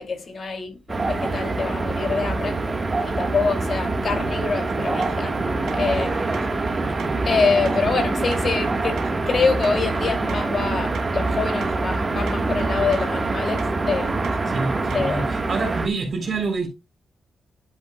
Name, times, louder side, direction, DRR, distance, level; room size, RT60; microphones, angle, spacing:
voice 1, 0.0-2.8 3.0-5.4 5.7-6.4 7.2-14.1 14.9-15.2, left 4 dB, 40° left, 2.5 m, -25 dB
sound 1, 0.9-15.9, right 3 dB, 25° right, 1.4 m, -25 dB
sound 2, 4.7-15.2, right 7 dB, 80° right, 1.3 m, -41 dB
voice 2, 14.5-16.7, right 4 dB, 45° right, 3.4 m, -27 dB
11.0 x 8.0 x 2.3 m
wide cardioid pair, 155°, 0 cm